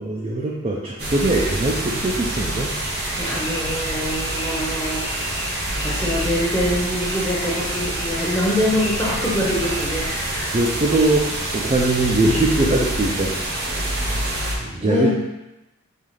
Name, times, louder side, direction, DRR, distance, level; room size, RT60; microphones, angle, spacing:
voice 1, 0.0-2.7 10.5-15.1, right 2 dB, 30° right, -3 dB, 0.3 m, -22 dB
sound 1, 1.0-14.5, right 1 dB, 50° right, 0.7 m, -26 dB
sound 2, 2.8-10.2, left 2 dB, 80° left, 1.2 m, -36 dB
voice 2, 3.2-5.4 5.8-10.6 14.0-14.3 14.7-15.1, left 1 dB, 10° left, -7 dB, 0.9 m, -24 dB
5.4 x 2.4 x 3.2 m, 0.99 s
head